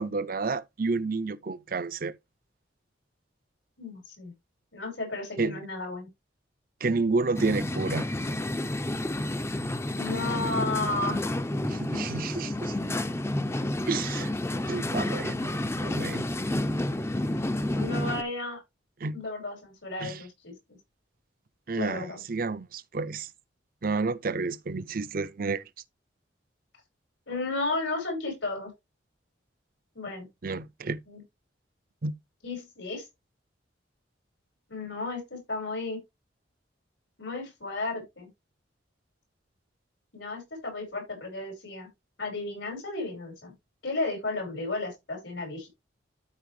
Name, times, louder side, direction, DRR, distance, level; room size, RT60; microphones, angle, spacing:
voice 1, 0.0-2.1 5.4-5.6 6.8-8.1 11.7-13.0 13.9-14.3 14.7-15.5 15.8-16.3 19.0-19.2 20.0-20.2 21.7-23.3 23.8-25.6 30.4-31.0 32.0-32.1, right 3 dB, 50° right, 0.6 m, -30 dB
voice 2, 3.8-4.3 4.7-6.1 9.9-11.3 17.7-18.6 19.1-20.5 21.8-22.2 27.3-28.7 30.0-30.3 31.1-31.2 32.4-33.1 34.7-36.0 37.2-38.3 40.1-41.9 42.2-43.5 43.8-45.7, left 2 dB, 80° left, 5.4 m, -33 dB
sound 1, 7.3-18.2, left 1 dB, 15° left, 0.6 m, -30 dB
13.0 x 4.5 x 3.2 m
head